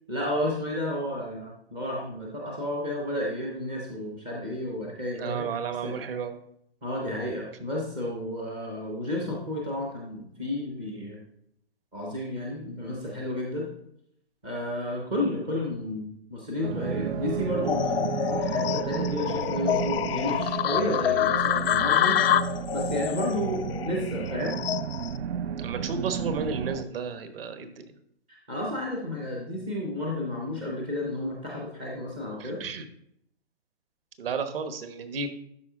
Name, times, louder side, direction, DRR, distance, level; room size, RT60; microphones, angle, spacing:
voice 1, 0.1-5.6 5.8-6.0 6.8-11.2 11.9-13.7 14.4-22.2 22.7-24.5 28.3-32.6, left 1 dB, 10° right, -2 dB, 0.4 m, -32 dB
voice 2, 5.2-6.4 25.6-27.9 32.4-32.8 34.2-35.3, right 5 dB, 60° right, 9 dB, 1.2 m, -33 dB
sound 1, 16.6-26.8, right 8 dB, 75° right, 0.5 m, -32 dB
sound 2, 17.6-25.2, left 11 dB, 60° left, 0.5 m, -27 dB
12.0 x 4.7 x 3.7 m, 0.72 s
hypercardioid pair, 155°, 33 cm